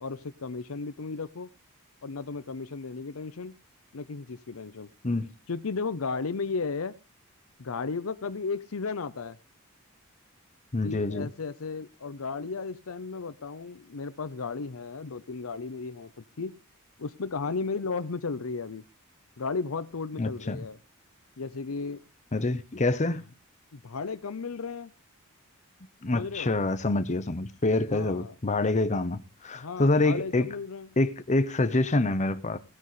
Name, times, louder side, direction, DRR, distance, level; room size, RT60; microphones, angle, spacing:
voice 1, 0.0-1.5 2.0-3.5 3.9-4.9 5.5-6.9 7.6-9.4 10.8-16.5 17.0-18.8 19.4-20.8 21.4-22.0 23.1-23.2 23.7-24.9 26.1-26.6 27.9-28.3 29.5-30.9, left 4 dB, 70° left, 0.7 m, -34 dB
voice 2, 10.7-11.3 20.2-20.6 22.3-23.2 26.0-30.5 31.0-32.6, left 2 dB, 35° left, 0.8 m, -26 dB
17.5 x 9.8 x 3.1 m
head